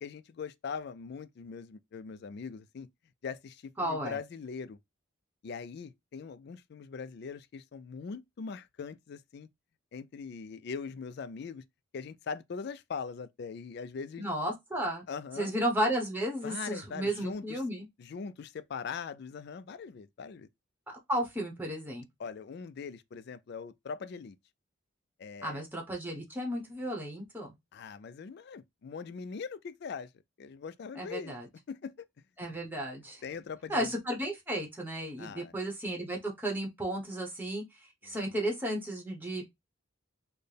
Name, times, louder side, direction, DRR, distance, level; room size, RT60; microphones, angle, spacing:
voice 1, 0.0-2.9 3.2-4.8 5.4-9.5 9.9-11.6 11.9-14.2 15.1-15.5 16.4-17.6 18.0-20.5 22.2-24.4 25.2-25.6 27.7-30.1 30.4-31.4 31.7-32.1 33.2-33.9 35.2-35.5 38.0-38.4, left 5 dB, 50° left, 0.3 m, -41 dB
voice 2, 3.8-4.2 14.2-15.0 15.4-17.9 20.9-22.0 25.4-27.5 30.9-31.5 32.4-33.2 33.7-37.6 38.0-39.5, right 1 dB, 10° right, 0.9 m, -33 dB
4.2 x 2.1 x 3.3 m
head